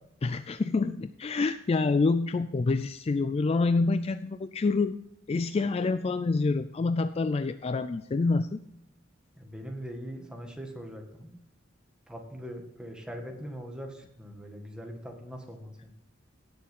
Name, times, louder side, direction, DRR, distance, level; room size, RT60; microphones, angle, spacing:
voice 1, 0.2-4.9 5.3-8.6, left 3 dB, 30° left, 12 dB, 0.3 m, -27 dB
voice 2, 9.4-11.4 12.1-15.9, equal, 5° right, 2 dB, 1.8 m, -41 dB
17.0 x 7.0 x 3.7 m, 0.82 s
head